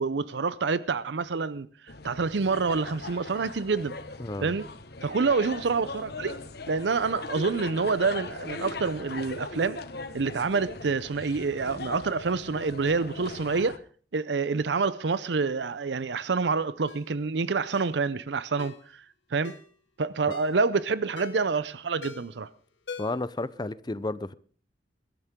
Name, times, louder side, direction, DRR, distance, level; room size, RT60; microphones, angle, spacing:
voice 1, 0.0-1.7 2.0-3.9 4.4-4.7 5.0-6.4 6.7-9.8 10.1-13.8 14.1-19.0 19.3-19.5 20.0-22.5, right 4 dB, 75° right, 0.6 m, -27 dB
sound 1, 1.9-13.8, left 3 dB, 60° left, 1.4 m, -40 dB
voice 2, 4.2-4.5 23.0-24.3, left 2 dB, 25° left, 0.6 m, -32 dB
Ringtone, 16.9-17.1 17.7-18.0 18.6-18.8 19.4-19.7 20.3-20.6 21.2-21.5 22.0-22.4 22.9-23.3 23.6-23.7, left 4 dB, 90° left, 1.8 m, -43 dB
21.5 x 12.5 x 3.7 m
head